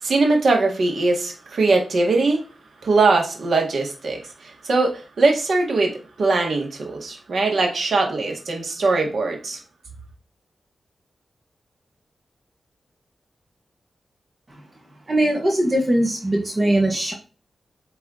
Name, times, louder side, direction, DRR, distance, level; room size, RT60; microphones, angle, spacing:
voice 1, 0.0-2.4 2.8-9.6, right 3 dB, 70° right, 1.7 m, -21 dB
voice 2, 15.1-17.1, right 1 dB, 30° right, 1.6 m, -20 dB
8.5 x 3.4 x 3.8 m
wide cardioid pair, 140°, 0 cm